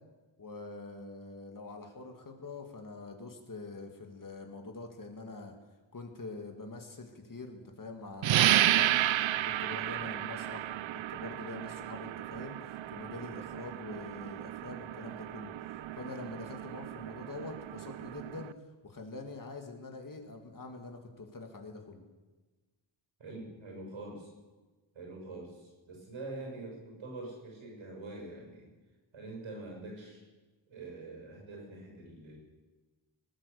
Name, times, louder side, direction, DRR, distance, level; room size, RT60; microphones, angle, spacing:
voice 1, 0.4-5.6 5.9-10.7 11.1-18.5 18.8-22.0, left 3 dB, 40° left, 4 dB, 2.2 m, -45 dB
sound 1, 8.2-18.5, right 13 dB, 75° right, 0.6 m, -32 dB
voice 2, 23.2-24.3 24.9-28.7 29.1-30.2 30.7-32.4, right 2 dB, 90° right, 0 dB, 6.4 m, -45 dB
19.5 x 9.0 x 6.9 m, 1.2 s
wide cardioid pair, 85°, 47 cm